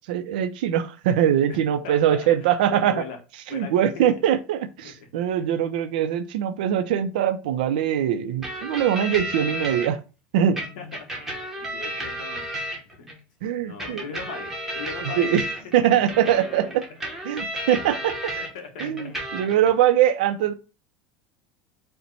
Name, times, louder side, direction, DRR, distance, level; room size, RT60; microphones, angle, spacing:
voice 1, 0.1-3.0 3.5-10.0 10.3-10.6 13.4-14.0 15.0-15.4 15.7-16.8 17.2-18.3 18.8-20.5, right 10 dB, 75° right, 0.5 m, -22 dB
voice 2, 1.5-3.2 3.5-4.0 4.8-5.1 10.5-12.4 12.9-13.1 13.5-15.3 15.8-15.9 18.4-19.1, left 5 dB, 65° left, 1.2 m, -39 dB
sound 1, 8.4-9.9 10.6-13.1 13.8-18.5 18.8-19.7, right 1 dB, 5° right, 0.8 m, -33 dB
4.4 x 2.2 x 3.9 m
supercardioid pair, 175°, 5 cm